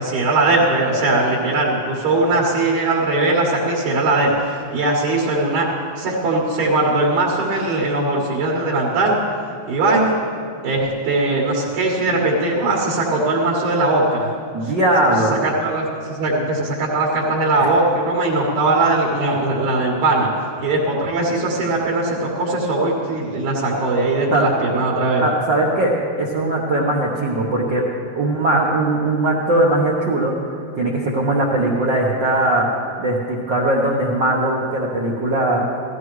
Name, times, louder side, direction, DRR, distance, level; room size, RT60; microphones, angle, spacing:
voice 1, 0.0-5.7 6.0-9.2 9.7-10.3 10.6-14.3 15.4-20.3 20.6-25.2, right 2 dB, 80° right, -4 dB, 3.1 m, -20 dB
voice 2, 14.5-15.3 17.6-17.7 24.3-24.4 25.2-25.9 26.2-27.8 28.1-32.7 33.0-35.6, right 1 dB, 60° right, -3 dB, 1.2 m, -19 dB
17.0 x 14.5 x 3.1 m, 2.2 s
omnidirectional pair, 3.4 m